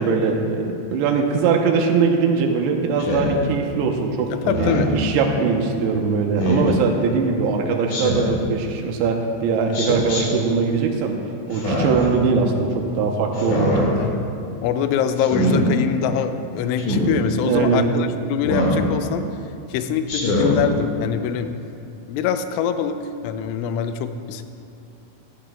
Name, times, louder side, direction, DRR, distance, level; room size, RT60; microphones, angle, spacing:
voice 1, 0.0-11.2 11.5-13.9 17.4-17.9, right 5 dB, 85° right, 2 dB, 2.3 m, -21 dB
Speech synthesizer, 3.0-3.3 4.4-5.0 6.4-6.7 7.9-8.4 9.7-10.2 11.5-12.1 13.3-13.9 15.2-15.6 16.8-17.1 18.4-18.8 20.1-20.6, left 1 dB, 55° left, 2.4 m, -22 dB
voice 2, 4.3-4.9 14.0-14.3 14.6-19.2 19.7-21.5 22.1-24.4, left 7 dB, 85° left, 9 dB, 2.9 m, -24 dB
15.0 x 13.0 x 2.2 m, 2.6 s
omnidirectional pair, 5.6 m